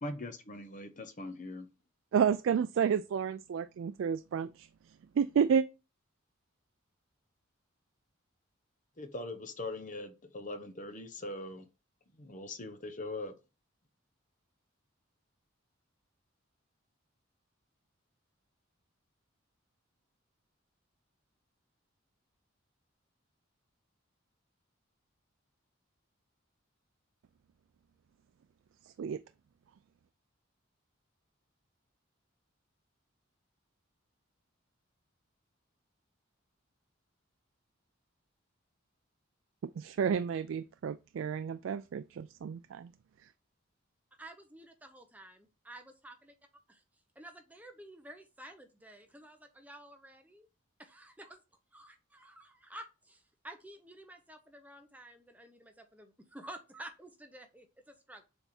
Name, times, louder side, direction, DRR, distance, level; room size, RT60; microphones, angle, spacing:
voice 1, 0.0-1.7 9.0-11.7 12.1-13.3, left 2 dB, 40° left, 0.9 m, -41 dB
voice 2, 2.1-4.7 5.2-5.7 29.0-29.2 39.8-42.9, right 7 dB, 65° right, 0.3 m, -30 dB
voice 3, 44.2-46.3 46.7-46.8 47.2-50.5 50.8-51.4 51.7-58.2, right 1 dB, 10° right, 0.7 m, -51 dB
7.1 x 3.4 x 4.2 m
head